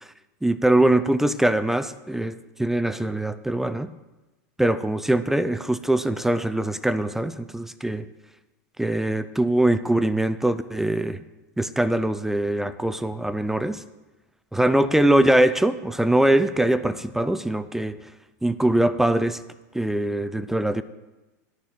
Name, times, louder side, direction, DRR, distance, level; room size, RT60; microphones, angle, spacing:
voice 1, 0.4-3.9 4.6-8.1 8.8-11.2 11.6-13.8 14.5-18.0 18.4-19.4 19.7-20.8, right 1 dB, 5° right, 12 dB, 0.4 m, -22 dB
11.0 x 6.9 x 6.6 m, 1.1 s
supercardioid pair, 125°, 9 cm